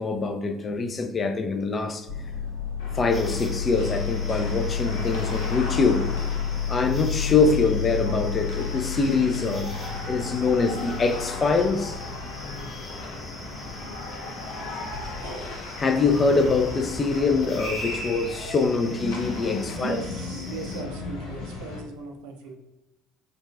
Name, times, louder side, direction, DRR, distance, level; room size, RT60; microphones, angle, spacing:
voice 1, 0.0-2.1 2.9-6.0 6.7-9.7 10.1-12.0 15.8-20.0, left 4 dB, 30° left, 6 dB, 0.4 m, -24 dB
sound 1, 2.1-20.1, left 6 dB, 85° right, 1.0 m, -32 dB
sound 2, 2.8-21.8, left 3 dB, 65° left, 0.6 m, -37 dB
sound 3, 3.1-20.8, left 1 dB, 10° left, 0.8 m, -44 dB
voice 2, 19.7-22.6, right 4 dB, 65° right, 4 dB, 0.4 m, -37 dB
3.8 x 2.3 x 2.4 m, 0.98 s
figure-of-eight pair, 60°, 0 cm